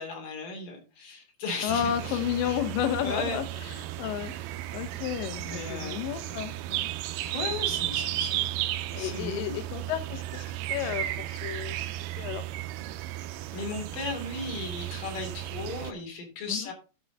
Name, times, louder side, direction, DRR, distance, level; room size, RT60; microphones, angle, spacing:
voice 1, 0.0-2.2 3.0-3.4 5.4-6.4 7.3-8.4 8.9-9.6 13.5-16.7, left 3 dB, 50° left, 2 dB, 4.3 m, -36 dB
voice 2, 1.6-4.3 4.7-6.9 8.9-11.9 12.2-12.4 16.5-16.7, left 10 dB, 85° left, 9 dB, 3.1 m, -32 dB
sound 1, 1.7-15.9, right 14 dB, 85° right, 2.3 m, -34 dB
13.0 x 5.5 x 4.0 m, 0.33 s
omnidirectional pair, 5.1 m